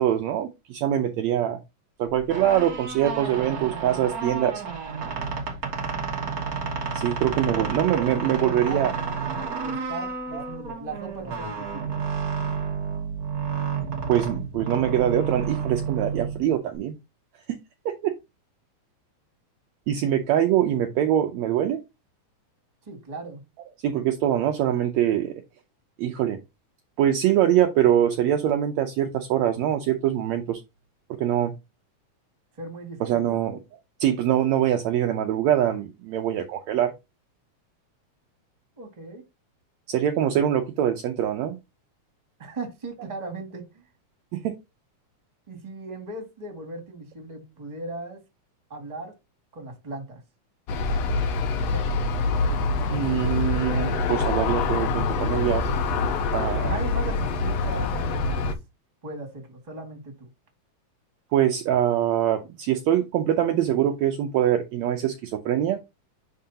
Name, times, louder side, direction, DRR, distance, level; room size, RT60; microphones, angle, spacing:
voice 1, 0.0-1.6 2.0-4.6 6.9-8.9 10.3-10.4 14.1-16.9 17.5-17.6 17.9-18.2 19.9-21.8 23.8-25.3 26.0-26.4 27.0-30.6 31.2-31.5 33.0-33.6 34.0-36.9 39.9-41.6 44.3-44.6 52.9-55.6 56.3-56.8 61.3-65.8, right 11 dB, 75° right, 5 dB, 1.7 m, -23 dB
sound 1, 2.1-16.8, right 5 dB, 55° right, 1.0 m, -30 dB
voice 2, 7.3-7.7 8.2-8.8 9.6-11.9 22.8-23.4 32.6-33.4 38.8-39.2 42.4-43.8 45.5-48.2 48.7-49.1 49.5-50.2 51.7-52.0 56.5-58.5 59.0-60.3, right 2 dB, 15° right, 3 dB, 1.6 m, -37 dB
Aircraft, 50.7-58.5, left 3 dB, 70° left, 1.8 m, -25 dB
10.0 x 3.8 x 2.8 m, 0.23 s
omnidirectional pair, 3.6 m